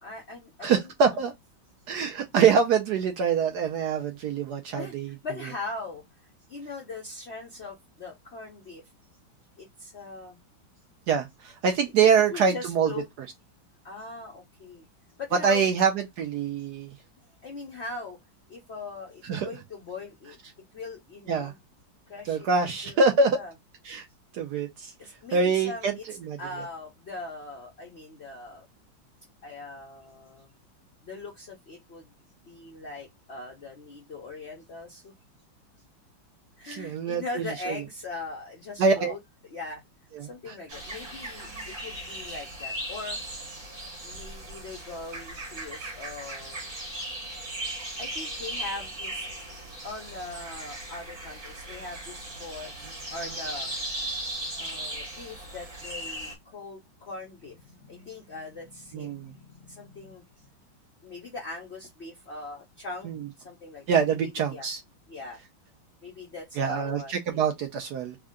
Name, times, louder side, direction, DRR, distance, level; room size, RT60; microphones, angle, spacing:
voice 1, 0.0-0.9 4.7-6.0 6.5-8.8 9.6-10.4 12.3-13.1 13.8-14.9 15.2-15.7 17.4-18.2 18.5-20.4 20.7-21.6 22.1-23.5 25.0-26.0 26.4-28.6 29.4-30.5 31.0-32.1 32.4-35.1 36.6-39.8 40.2-43.2 44.0-46.7 48.0-49.3 49.5-52.7 53.1-53.7 54.6-60.5 61.0-63.1 63.4-64.7 65.1-65.4 66.0-67.5, left 3 dB, 65° left, 0.6 m, -40 dB
voice 2, 0.6-1.3 1.9-5.1 11.1-12.9 15.4-15.9 16.2-16.9 19.3-19.5 21.3-21.5 22.3-23.4 23.9-24.0 24.3-24.9 25.3-25.9 26.3-26.4 36.7-37.5 38.8-39.1 40.1-40.3 58.9-59.3 63.0-63.2 63.9-64.8 66.6-68.2, right 5 dB, 70° right, 1.0 m, -24 dB
sound 1, 40.7-56.3, right 1 dB, 45° right, 1.8 m, -37 dB
3.6 x 2.1 x 3.5 m
omnidirectional pair, 2.1 m